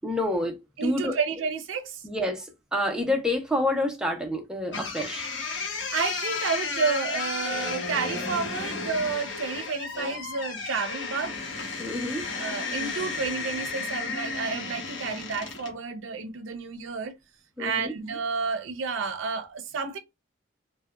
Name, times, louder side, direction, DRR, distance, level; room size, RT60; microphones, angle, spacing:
voice 1, 0.0-0.6 0.8-1.2 2.0-5.3 11.8-12.2 17.6-17.9, left 1 dB, 5° right, 0.5 m, -28 dB
voice 2, 0.8-2.0 5.9-11.4 12.3-17.1 17.6-20.0, right 5 dB, 85° right, 0.5 m, -31 dB
sound 1, 4.7-15.8, left 4 dB, 70° left, 0.8 m, -33 dB
2.7 x 2.1 x 2.2 m
head